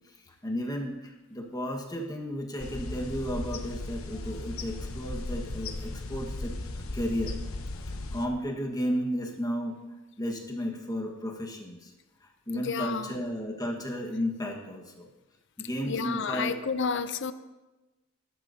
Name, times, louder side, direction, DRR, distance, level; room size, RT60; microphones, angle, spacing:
voice 1, 0.3-6.5 6.9-7.3 8.1-9.7 10.2-11.9 12.5-15.1 15.6-16.5, equal, 15° left, 0 dB, 1.5 m, -33 dB
sound 1, 2.6-8.3, left 2 dB, 85° left, 1.0 m, -36 dB
voice 2, 12.5-13.2 15.9-17.3, left 5 dB, 60° left, 11 dB, 0.6 m, -31 dB
19.0 x 11.5 x 2.8 m, 1.1 s
head